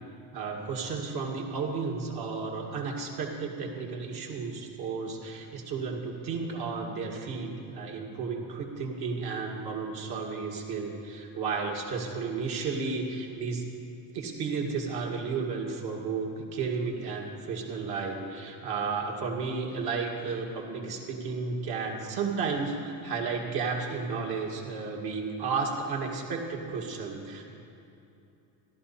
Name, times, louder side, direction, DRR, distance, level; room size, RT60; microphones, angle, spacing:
voice 1, 0.3-13.6 14.1-27.4, right 4 dB, 55° right, 0 dB, 2.2 m, -33 dB
14.5 x 12.0 x 4.3 m, 2.8 s
cardioid pair, 130°, 45 cm